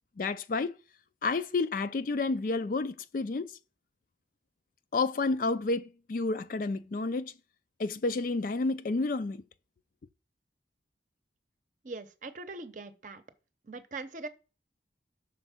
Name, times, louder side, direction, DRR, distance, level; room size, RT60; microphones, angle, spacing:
voice 1, 0.2-0.8 1.2-3.6 4.9-7.3 7.8-9.4, left 3 dB, 45° left, 0.4 m, -30 dB
voice 2, 11.8-13.2 13.6-14.3, right 3 dB, 45° right, 0.7 m, -41 dB
6.2 x 4.5 x 5.7 m
head